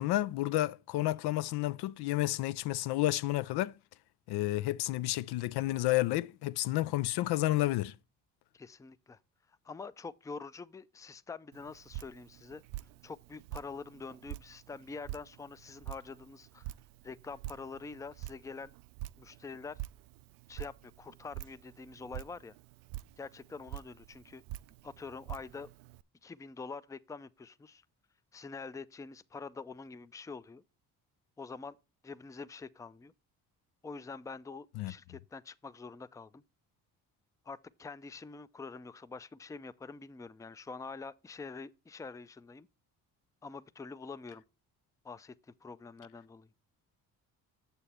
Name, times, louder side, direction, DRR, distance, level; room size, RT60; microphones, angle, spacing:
voice 1, 0.0-3.7 4.3-7.9 34.8-34.9, left 16 dB, 75° left, 0.5 m, -31 dB
voice 2, 8.5-9.2 9.6-12.6 13.0-16.7 17.0-18.7 19.2-19.8 20.5-22.5 23.2-24.4 24.8-25.7 26.2-27.8 28.3-30.6 31.4-31.8 32.0-33.1 33.8-36.4 37.5-42.7 43.4-44.4 45.0-45.3 45.6-46.5, left 4 dB, 10° left, 0.4 m, -45 dB
Drip, 11.5-26.0, right 16 dB, 80° right, 0.5 m, -47 dB
6.9 x 6.9 x 4.2 m
supercardioid pair, 65°, 40 cm